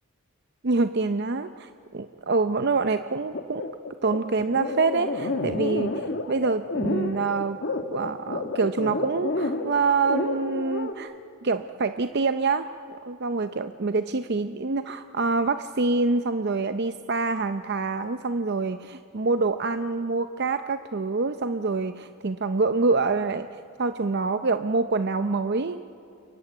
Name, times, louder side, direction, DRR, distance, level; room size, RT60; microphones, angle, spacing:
voice 1, 0.6-3.7 4.0-7.6 7.9-11.1 11.4-23.5 23.8-25.8, right 3 dB, 50° right, 10 dB, 0.6 m, -26 dB
sound 1, 3.3-10.9, left 2 dB, 55° left, 1.5 m, -30 dB
29.0 x 23.0 x 8.2 m, 2.7 s
head